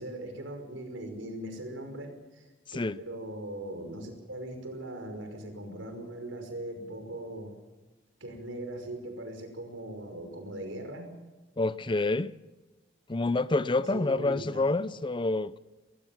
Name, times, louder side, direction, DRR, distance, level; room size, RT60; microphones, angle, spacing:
voice 1, 0.0-2.5 3.0-7.5 8.2-11.1 13.9-14.8, right 1 dB, 90° right, 5.5 m, -40 dB
voice 2, 11.6-12.4 13.1-15.6, left 2 dB, 25° left, 0.6 m, -28 dB
21.5 x 20.0 x 7.3 m
head